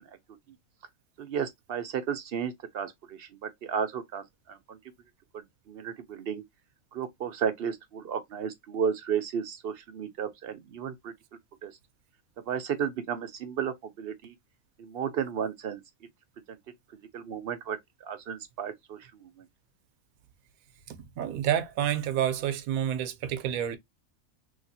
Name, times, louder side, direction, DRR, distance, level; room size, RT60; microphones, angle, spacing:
voice 1, 1.2-4.8 5.3-6.4 6.9-11.1 11.6-11.7 12.5-14.3 14.8-15.8 16.5-16.6 17.1-19.3, right 7 dB, 60° right, 0.6 m, -33 dB
voice 2, 20.9-23.8, right 10 dB, 80° right, 1.0 m, -29 dB
3.3 x 2.8 x 2.6 m
omnidirectional pair, 1.5 m